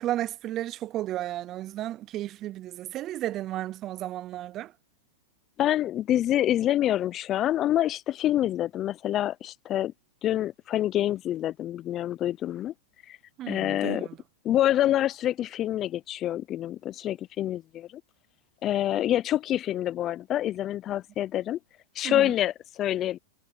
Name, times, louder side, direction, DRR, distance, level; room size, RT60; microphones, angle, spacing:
voice 1, 0.0-4.7 13.4-14.2 22.0-22.3, right 13 dB, 35° right, 0.4 m, -33 dB
voice 2, 5.6-9.9 10.2-12.7 13.1-13.2 13.5-14.1 14.4-17.9 18.6-21.6 22.0-23.2, left 12 dB, 30° left, 0.5 m, -26 dB
hypercardioid pair, 125°, 0 cm